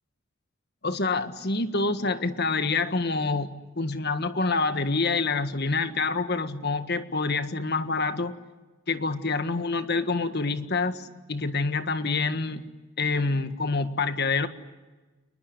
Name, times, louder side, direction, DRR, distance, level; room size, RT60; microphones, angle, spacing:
voice 1, 0.8-8.3 8.9-12.7 13.0-14.5, left 3 dB, 50° left, 10 dB, 1.7 m, -27 dB
29.0 x 20.5 x 9.8 m, 1.2 s
head